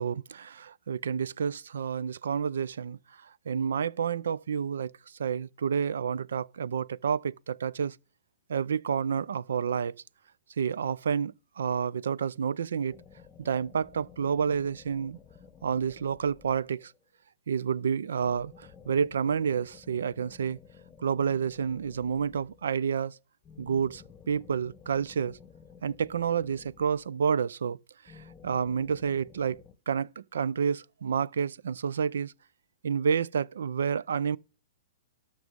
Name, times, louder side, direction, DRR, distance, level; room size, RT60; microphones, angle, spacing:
voice 1, 0.0-3.0 3.5-4.9 5.2-8.0 8.5-9.9 10.6-13.0 13.4-15.2 15.6-16.9 17.5-20.6 21.0-23.2 23.6-25.4 25.8-27.8 28.4-29.6 29.9-32.3 32.8-34.4, right 7 dB, 80° right, 0.4 m, -29 dB
sound 1, 12.9-17.1 18.2-22.8 23.4-27.4 28.0-29.7, left 6 dB, 15° left, 1.0 m, -54 dB
12.5 x 6.0 x 5.2 m
hypercardioid pair, 145°, 0 cm